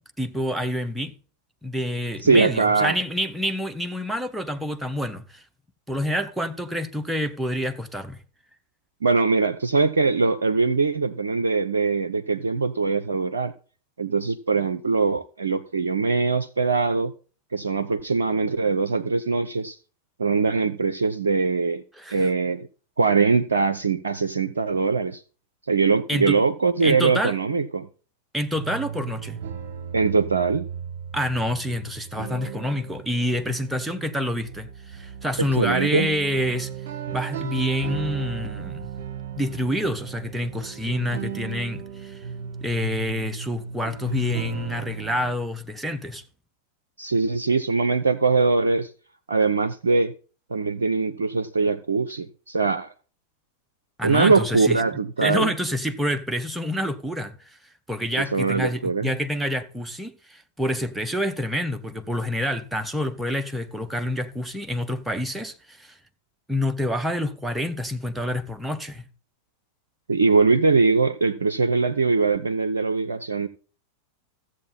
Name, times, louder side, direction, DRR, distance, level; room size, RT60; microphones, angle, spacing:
voice 1, 0.2-1.1 1.6-5.4 5.9-8.2 21.9-22.3 26.1-26.4 26.8-27.4 28.3-29.4 31.1-36.7 37.1-38.9 39.4-42.3 42.6-46.2 54.0-54.8 55.2-57.3 57.9-66.0 66.5-69.1, equal, 5° right, 0.7 m, -27 dB
voice 2, 2.2-2.9 9.0-13.5 14.0-17.1 17.5-19.8 20.2-21.8 22.1-22.7 23.0-25.2 25.7-27.9 29.9-30.7 35.4-36.1 47.0-48.9 49.3-50.1 50.5-52.9 54.0-55.5 58.3-59.2 70.1-73.5, right 4 dB, 70° right, 0.4 m, -22 dB
sound 1, 28.5-45.3, right 8 dB, 55° right, 0.8 m, -35 dB
14.0 x 7.4 x 4.1 m
figure-of-eight pair, 90°, 0 cm